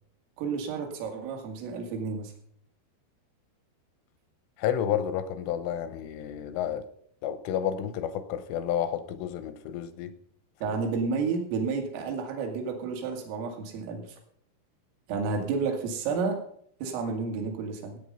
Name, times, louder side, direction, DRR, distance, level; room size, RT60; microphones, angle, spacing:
voice 1, 0.4-2.3 10.6-14.1 15.1-16.4 16.8-18.0, right 4 dB, 75° right, 4.7 m, -31 dB
voice 2, 4.6-6.8 7.2-10.1, left 9 dB, 80° left, 3.2 m, -30 dB
17.0 x 9.0 x 5.4 m
omnidirectional pair, 5.9 m